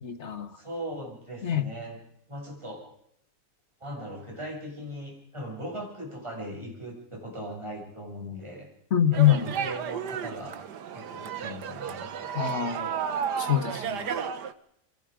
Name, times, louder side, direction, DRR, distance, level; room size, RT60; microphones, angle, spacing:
voice 1, 0.0-0.5 1.4-1.7 8.9-9.4 12.3-12.9 13.4-14.1, left 10 dB, 40° left, 1.6 m, -24 dB
voice 2, 0.5-2.0 2.3-2.8 3.8-8.7 9.1-10.6 10.9-12.4, equal, 15° right, 7.2 m, -39 dB
sound 1, 9.1-14.5, right 7 dB, 70° right, 1.8 m, -33 dB
30.0 x 24.0 x 5.1 m
omnidirectional pair, 1.9 m